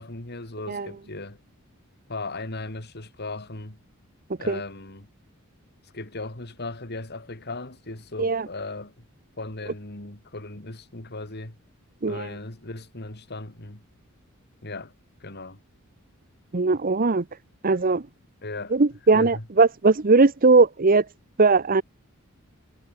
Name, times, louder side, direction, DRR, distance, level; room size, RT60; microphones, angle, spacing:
voice 1, 0.0-1.4 2.1-3.8 4.4-5.1 5.9-9.0 9.4-11.6 12.1-13.8 14.6-14.9 15.2-15.6 18.4-18.8 19.1-19.4, left 2 dB, 50° left, 3.1 m, -37 dB
voice 2, 16.5-17.2 17.6-18.1 18.7-21.0 21.4-21.8, right 3 dB, 40° right, 0.8 m, -19 dB
head